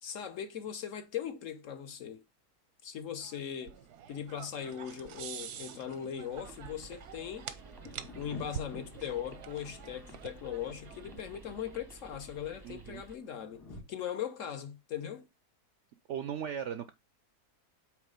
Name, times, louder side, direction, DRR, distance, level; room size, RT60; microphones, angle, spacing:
voice 1, 0.0-2.2 2.8-3.8 4.1-7.5 8.2-13.6 13.9-15.3, left 9 dB, 60° left, 1.1 m, -39 dB
sound 1, 3.2-11.7, right 9 dB, 90° right, 1.3 m, -47 dB
sound 2, 6.3-13.2, right 2 dB, 20° right, 0.6 m, -53 dB
Thunder, 7.7-13.8, left 3 dB, 85° left, 2.9 m, -52 dB
voice 2, 12.6-13.0 16.1-16.9, right 8 dB, 70° right, 0.7 m, -37 dB
8.2 x 3.2 x 5.1 m
omnidirectional pair, 1.7 m